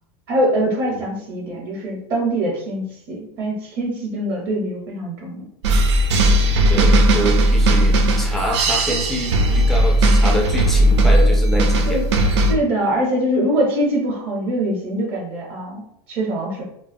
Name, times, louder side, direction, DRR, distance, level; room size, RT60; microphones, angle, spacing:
voice 1, 0.3-5.5 11.9-12.1 12.5-16.6, right 1 dB, 40° right, -2 dB, 0.6 m, -23 dB
sound 1, 5.6-12.5, right 1 dB, 85° right, 0.5 m, -16 dB
voice 2, 6.7-12.0, equal, ahead, 0 dB, 0.3 m, -26 dB
2.6 x 2.2 x 2.5 m, 0.75 s
supercardioid pair, 160°, 14 cm